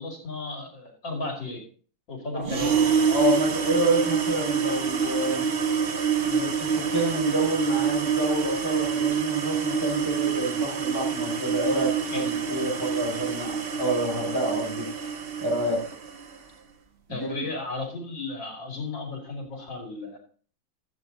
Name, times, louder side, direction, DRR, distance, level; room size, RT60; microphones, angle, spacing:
voice 1, 0.0-1.6 2.1-2.8 12.1-12.6 17.1-20.2, left 2 dB, 70° left, 1 dB, 3.3 m, -35 dB
sound 1, 2.4-16.4, right 6 dB, 45° right, 0.8 m, -26 dB
voice 2, 3.1-5.5 6.2-15.1 15.4-15.8 17.1-17.4, right 1 dB, 10° right, -4 dB, 5.6 m, -28 dB
13.5 x 8.3 x 3.9 m, 0.42 s
omnidirectional pair, 2.1 m